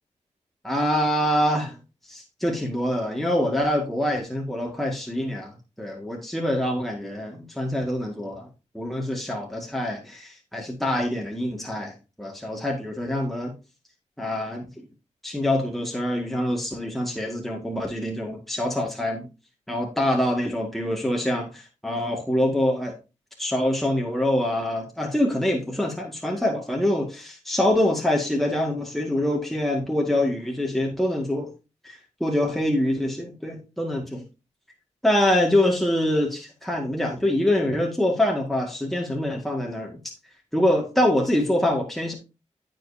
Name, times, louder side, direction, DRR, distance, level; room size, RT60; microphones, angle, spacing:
voice 1, 0.6-1.8 2.1-8.5 8.7-11.9 12.2-13.6 14.2-14.6 15.2-19.3 19.7-22.9 23.4-31.5 31.8-34.2 35.0-40.0 40.5-42.1, left 1 dB, ahead, 0 dB, 1.9 m, -25 dB
15.0 x 5.3 x 2.7 m, 0.29 s
cardioid pair, 75°, 12 cm